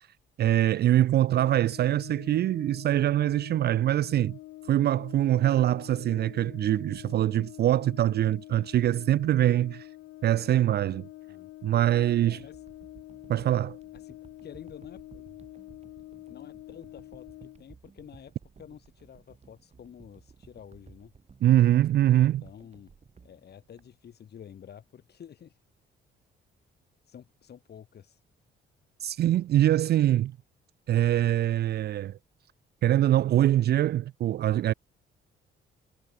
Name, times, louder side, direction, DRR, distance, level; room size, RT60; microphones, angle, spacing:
voice 1, 0.4-4.4 4.7-9.9 10.2-11.1 11.6-12.4 13.3-13.8 21.4-22.4 29.0-30.3 30.9-32.2 32.8-34.7, right 12 dB, 55° right, 0.4 m, -23 dB
Brass instrument, 1.3-17.7, left 17 dB, 85° left, 0.6 m, -46 dB
voice 2, 12.2-12.6 13.9-15.3 16.3-21.1 22.2-22.9 23.2-25.6 27.0-28.2, left 8 dB, 55° left, 2.6 m, -49 dB
sound 1, 12.2-24.4 25.0-25.1, right 5 dB, 35° right, 2.0 m, -56 dB
cardioid pair, 90°, 20 cm